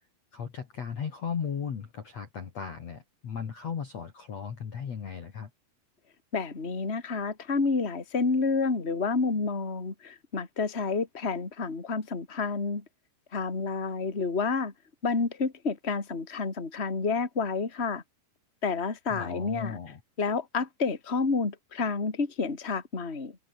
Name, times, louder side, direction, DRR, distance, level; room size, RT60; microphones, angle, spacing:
voice 1, 0.3-5.5 19.1-20.0, left 7 dB, 45° left, 2.9 m, -36 dB
voice 2, 6.3-12.8 13.3-14.7 15.0-18.0 18.6-19.8 20.2-23.4, left 4 dB, 15° left, 2.9 m, -29 dB
omnidirectional pair, 5.1 m